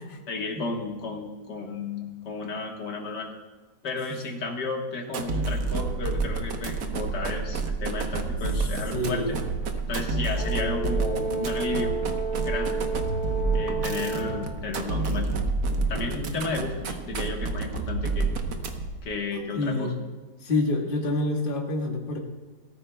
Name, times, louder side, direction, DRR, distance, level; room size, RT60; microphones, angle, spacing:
voice 1, 0.3-3.3 3.8-9.4 9.9-11.9 12.4-12.8 13.5-15.3 15.9-18.3 19.0-19.9, left 3 dB, 90° left, 1 dB, 2.0 m, -33 dB
sound 1, 5.1-19.1, right 3 dB, 65° right, 1.5 m, -29 dB
voice 2, 8.9-9.4 19.6-20.0 20.4-22.2, left 2 dB, 35° left, 1 dB, 1.5 m, -27 dB
Brass instrument, 10.4-14.6, right 4 dB, 25° right, 2.1 m, -31 dB
18.0 x 14.0 x 2.2 m, 1.3 s
omnidirectional pair, 1.8 m